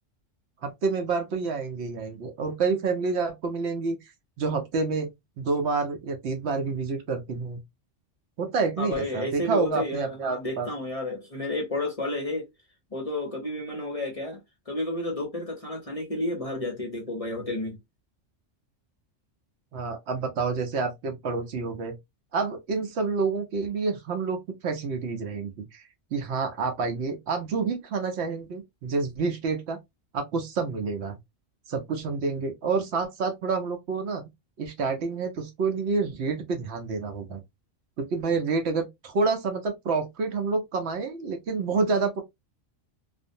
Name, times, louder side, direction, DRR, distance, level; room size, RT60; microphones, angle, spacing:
voice 1, 0.6-4.0 4.4-5.1 5.4-7.6 8.4-10.7 19.7-21.9 22.3-25.8 26.1-29.8 30.1-31.2 31.7-34.2 34.6-37.4 38.0-42.2, right 4 dB, 65° right, 0.9 m, -28 dB
voice 2, 8.8-12.5 12.9-14.4 14.7-17.8, left 1 dB, 35° left, 0.7 m, -31 dB
2.5 x 2.1 x 2.5 m
omnidirectional pair, 1.3 m